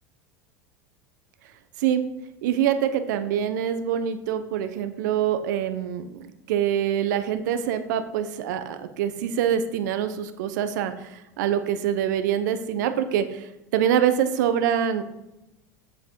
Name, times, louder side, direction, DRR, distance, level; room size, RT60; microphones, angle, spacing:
voice 1, 2.4-15.0, right 9 dB, 75° right, 9 dB, 1.0 m, -25 dB
8.2 x 7.7 x 4.7 m, 0.92 s
hypercardioid pair, 95°, 10 cm